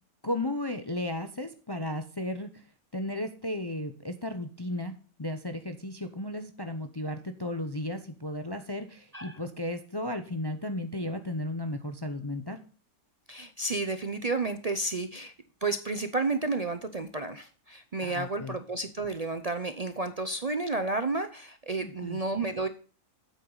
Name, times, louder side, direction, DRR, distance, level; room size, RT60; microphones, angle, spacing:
voice 1, 0.2-2.6 2.9-4.9 5.2-12.6 18.0-18.6 21.8-22.2, left 1 dB, 25° left, 8 dB, 0.5 m, -34 dB
voice 2, 13.3-15.3 15.6-22.7, right 3 dB, 45° right, 9 dB, 0.5 m, -31 dB
9.0 x 8.3 x 3.9 m, 0.38 s
omnidirectional pair, 1.5 m